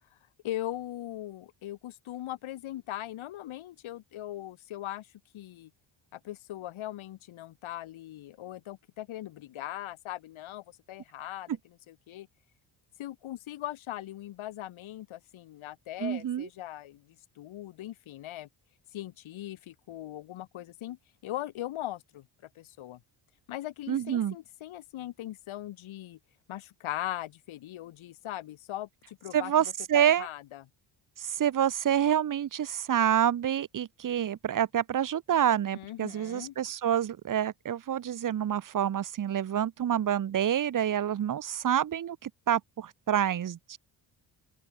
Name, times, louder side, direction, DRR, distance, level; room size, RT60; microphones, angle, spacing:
voice 1, 0.4-5.1 5.3-5.7 6.1-12.3 13.0-18.5 18.9-22.3 22.5-23.0 23.5-26.2 26.5-30.7 35.7-36.6, left 14 dB, 90° left, 5.0 m, -40 dB
voice 2, 16.0-16.5 23.9-24.3 29.3-30.3 31.2-43.8, right 10 dB, 40° right, 1.1 m, -27 dB
open air
cardioid pair, 130°, 46 cm